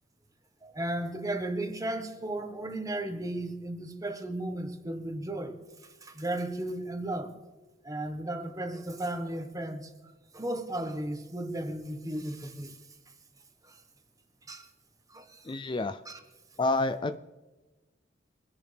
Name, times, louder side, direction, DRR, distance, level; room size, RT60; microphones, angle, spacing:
voice 1, 0.6-5.6 6.0-7.3 7.8-9.9 10.3-12.8 13.6-13.8 14.5-14.7 15.1-15.5 16.0-16.2, right 1 dB, 20° right, 1.4 m, -35 dB
voice 2, 15.5-16.0 16.6-17.2, left 2 dB, 25° left, 0.4 m, -28 dB
25.0 x 10.5 x 3.4 m
head